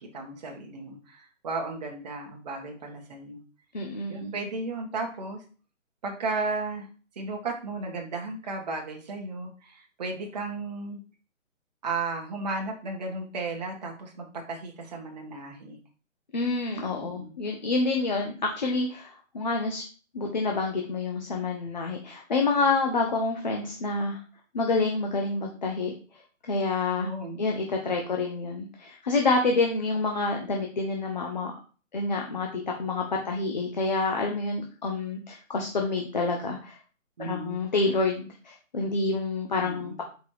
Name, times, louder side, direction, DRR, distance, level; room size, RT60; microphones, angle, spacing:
voice 1, 0.1-3.4 4.1-5.4 6.0-6.9 7.2-11.0 11.8-15.8 16.9-17.3 27.0-27.4 37.2-37.6 39.6-40.0, right 3 dB, 30° right, 0 dB, 1.2 m, -34 dB
voice 2, 3.7-4.3 16.3-19.8 20.1-24.2 24.5-25.9 26.5-27.1 27.4-31.5 31.9-36.8 37.2-40.0, left 3 dB, 35° left, 1 dB, 0.8 m, -28 dB
5.2 x 4.4 x 4.6 m, 0.38 s
hypercardioid pair, 175°, 40 cm